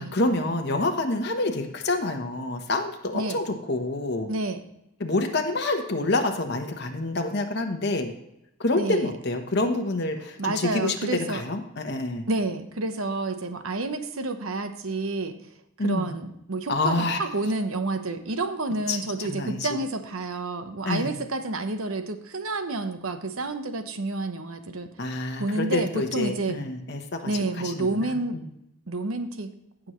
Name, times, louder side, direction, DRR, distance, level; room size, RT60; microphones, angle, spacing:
voice 1, 0.0-4.3 5.0-8.1 8.6-12.3 15.8-16.1 16.7-17.2 18.9-19.7 20.8-21.2 25.0-28.4, left 2 dB, 50° left, 4 dB, 1.0 m, -27 dB
voice 2, 4.3-4.6 8.8-9.1 10.4-11.4 12.3-15.4 15.8-24.9 25.4-26.6 27.2-28.4 28.9-29.5, right 2 dB, 80° right, 8 dB, 0.9 m, -29 dB
16.0 x 6.2 x 3.1 m, 0.82 s
head